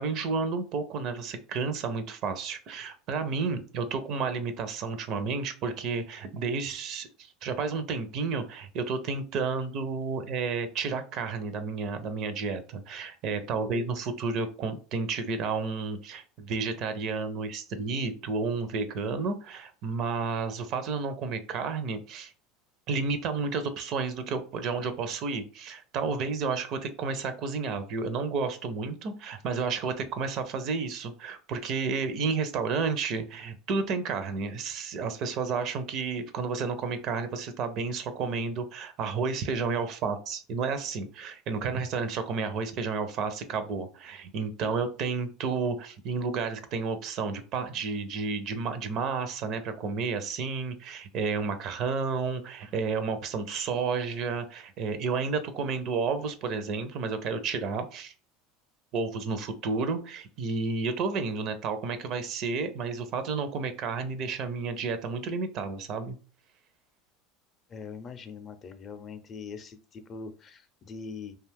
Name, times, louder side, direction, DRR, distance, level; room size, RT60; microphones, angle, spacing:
voice 1, 0.0-22.3 22.9-58.1 58.9-66.2, right 4 dB, 55° right, 10 dB, 0.5 m, -31 dB
voice 2, 67.7-71.4, left 5 dB, 40° left, 9 dB, 0.5 m, -42 dB
2.5 x 2.3 x 3.4 m, 0.38 s
hypercardioid pair, 85°, 0 cm